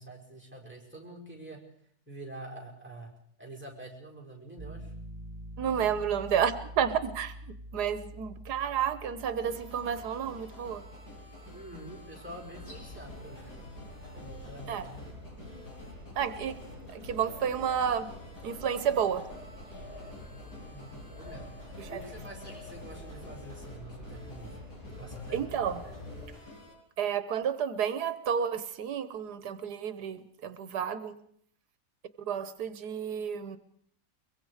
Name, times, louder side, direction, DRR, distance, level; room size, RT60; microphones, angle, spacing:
voice 1, 0.0-1.6 2.1-3.1 3.4-4.9 11.5-13.4 14.1-15.1 20.6-21.5 21.9-24.6 24.9-25.4, right 2 dB, 5° right, -1 dB, 5.4 m, -46 dB
Piano, 4.6-15.4, equal, 35° right, 2.3 m, -47 dB
voice 2, 5.6-7.3 7.7-10.8 14.7-14.9 16.2-16.6 16.9-18.1 18.4-19.2 21.8-22.0 25.3-25.9 27.0-31.2 32.3-33.6, right 8 dB, 85° right, 13 dB, 1.6 m, -31 dB
sound 1, 9.4-26.7, left 1 dB, 90° left, 8.4 m, -50 dB
sound 2, 12.4-26.3, left 1 dB, 70° left, 7.9 m, -46 dB
23.5 x 22.5 x 4.9 m, 0.65 s
omnidirectional pair, 1.7 m